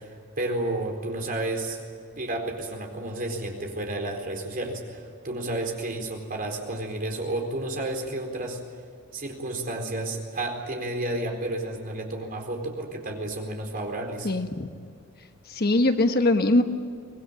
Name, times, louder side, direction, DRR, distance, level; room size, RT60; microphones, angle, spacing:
voice 1, 0.0-1.8 2.2-8.6 9.1-14.3, right 2 dB, 40° right, 2 dB, 4.2 m, -31 dB
voice 2, 14.2-14.7 15.5-16.6, left 2 dB, 45° left, 7 dB, 1.3 m, -21 dB
25.0 x 19.5 x 8.8 m, 2.3 s
head